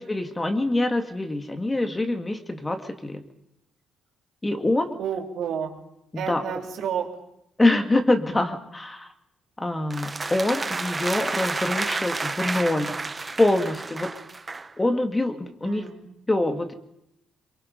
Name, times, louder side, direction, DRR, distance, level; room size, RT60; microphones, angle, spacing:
voice 1, 0.0-3.2 4.4-5.0 6.1-6.4 7.6-9.1 9.6-12.9 13.4-14.1 14.8-15.8 16.3-16.7, left 2 dB, 15° left, 6 dB, 2.2 m, -25 dB
voice 2, 5.0-5.8 6.1-7.1 15.6-16.2, right 8 dB, 75° right, 1 dB, 3.6 m, -31 dB
sound 1, 9.9-14.7, right 3 dB, 25° right, 0.9 m, -30 dB
23.0 x 23.0 x 5.4 m, 0.78 s
cardioid pair, 90°, 0 cm